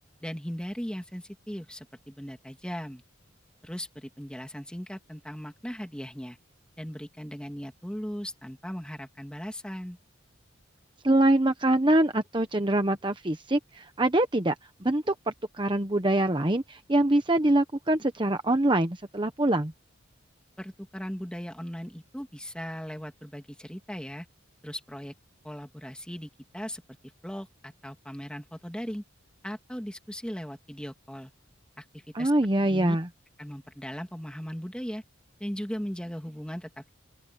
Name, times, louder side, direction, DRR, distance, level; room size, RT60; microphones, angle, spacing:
voice 1, 0.2-3.0 3.6-6.4 6.8-10.0 20.6-24.3 24.6-25.1 25.4-26.8 27.2-29.0 29.4-31.3 31.8-32.3 32.6-33.0 33.4-35.0 35.4-36.9, equal, 5° left, 2.4 m, -38 dB
voice 2, 11.0-14.5 14.8-19.7 32.1-33.1, right 1 dB, 25° right, 1.0 m, -24 dB
open air
head